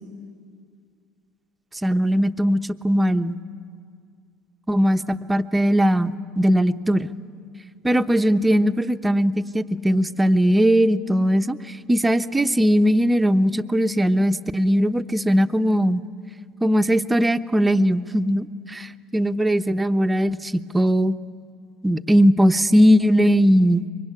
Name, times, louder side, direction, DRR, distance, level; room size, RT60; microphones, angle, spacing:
voice 1, 1.8-2.6 2.8-3.4 4.7-7.1 7.8-16.0 16.6-21.1 21.8-23.9, equal, 15° right, 10 dB, 0.9 m, -19 dB
25.0 x 23.5 x 9.9 m, 2.2 s
hypercardioid pair, 70°, 0 cm